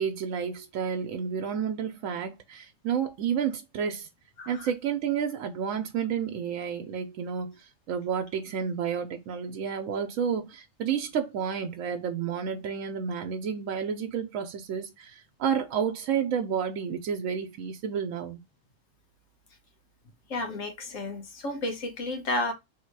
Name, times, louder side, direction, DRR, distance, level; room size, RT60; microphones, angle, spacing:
voice 1, 0.0-4.1 4.5-18.4, right 7 dB, 85° right, 1.0 m, -30 dB
voice 2, 4.4-4.7 20.3-22.5, left 2 dB, 90° left, 1.5 m, -32 dB
3.4 x 2.8 x 4.5 m
omnidirectional pair, 1.3 m